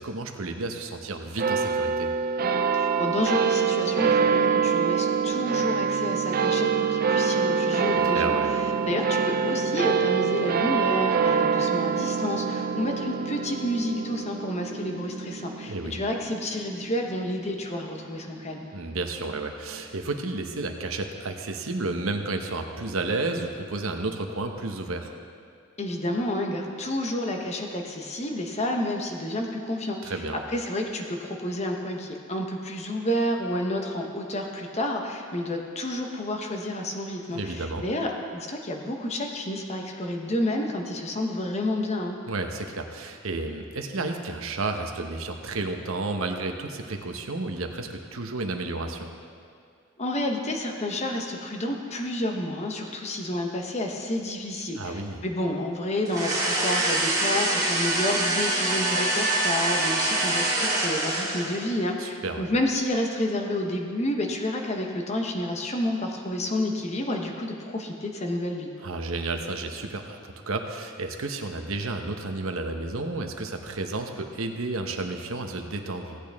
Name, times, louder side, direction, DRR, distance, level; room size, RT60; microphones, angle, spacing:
voice 1, 0.0-2.1 8.0-8.5 15.7-16.0 18.7-25.1 30.0-30.4 37.3-37.8 42.3-49.1 54.8-55.2 62.0-62.5 68.8-76.2, right 2 dB, 75° right, 4 dB, 0.9 m, -32 dB
sound 1, 1.4-18.1, right 6 dB, 45° right, 0.4 m, -25 dB
voice 2, 2.7-8.4 8.9-18.7 25.8-30.2 30.5-42.2 50.0-68.7, left 1 dB, 30° left, 2 dB, 1.0 m, -30 dB
sound 2, 56.1-61.7, right 2 dB, 15° right, 2.2 m, -25 dB
16.5 x 8.5 x 3.5 m, 2.2 s
head